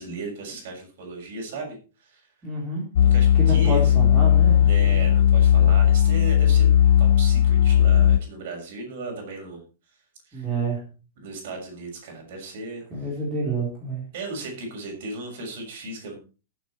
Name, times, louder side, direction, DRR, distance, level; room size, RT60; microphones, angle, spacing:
voice 1, 0.0-2.2 3.1-3.9 4.6-6.7 7.0-9.6 10.3-10.5 11.2-12.8 14.1-16.2, right 3 dB, 50° right, 1 dB, 6.7 m, -36 dB
voice 2, 2.4-2.8 3.3-5.0 10.3-10.8 12.9-14.0, right 2 dB, 10° right, -5 dB, 3.9 m, -28 dB
sound 1, 3.0-8.2, left 10 dB, 60° left, 0.5 m, -17 dB
19.0 x 7.9 x 4.4 m, 0.34 s
supercardioid pair, 180°, 0 cm